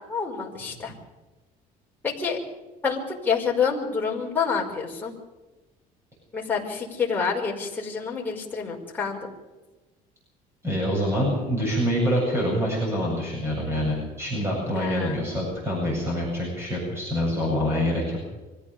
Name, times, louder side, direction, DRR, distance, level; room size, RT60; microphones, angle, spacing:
voice 1, 0.1-0.9 2.0-2.4 2.8-5.1 6.3-9.3 14.7-15.2, left 5 dB, 10° left, -3 dB, 5.1 m, -27 dB
voice 2, 10.6-18.2, equal, 15° right, -2 dB, 7.8 m, -26 dB
25.0 x 15.5 x 6.9 m, 1.2 s
cardioid pair, 170°, 16 cm